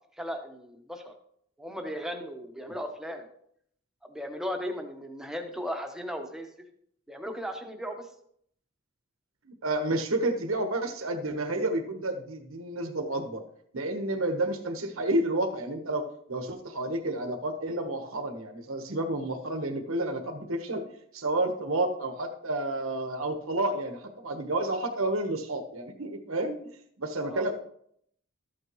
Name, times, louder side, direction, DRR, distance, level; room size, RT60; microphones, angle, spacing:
voice 1, 0.2-1.1 1.6-3.3 4.1-6.5 7.1-8.1 27.2-27.5, equal, 5° right, 4 dB, 1.0 m, -36 dB
voice 2, 9.4-13.4 13.7-20.8 21.1-26.7 27.0-27.5, right 2 dB, 80° right, 5 dB, 1.2 m, -30 dB
13.0 x 8.7 x 3.1 m, 0.68 s
head